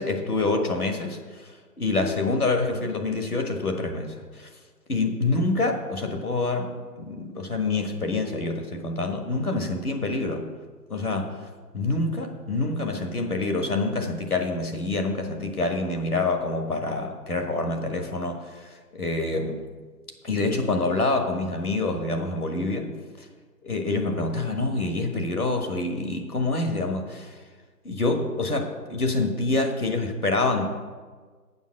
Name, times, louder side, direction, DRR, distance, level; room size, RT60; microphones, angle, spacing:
voice 1, 0.0-1.5 1.8-4.5 4.9-10.4 10.9-11.3 11.7-18.7 19.0-19.6 20.2-22.9 23.6-27.4 27.8-30.6, left 2 dB, 65° left, 4 dB, 1.6 m, -26 dB
7.2 x 5.7 x 7.6 m, 1.5 s
figure-of-eight pair, 165°, 49 cm